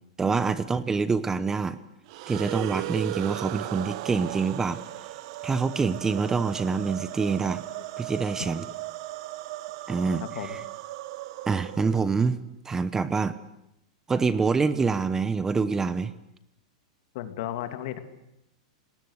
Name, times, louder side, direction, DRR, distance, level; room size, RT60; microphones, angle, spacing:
voice 1, 0.2-1.8 2.3-4.8 5.4-7.6 8.0-8.6 9.9-10.6 11.5-12.4 12.6-13.4 14.1-16.1, right 4 dB, 15° right, 14 dB, 0.9 m, -26 dB
sound 1, 2.1-12.3, right 17 dB, 55° right, 1.1 m, -37 dB
voice 2, 17.1-18.0, left 12 dB, 60° left, 8 dB, 2.6 m, -34 dB
29.0 x 19.5 x 8.1 m, 0.85 s
supercardioid pair, 135°, 4 cm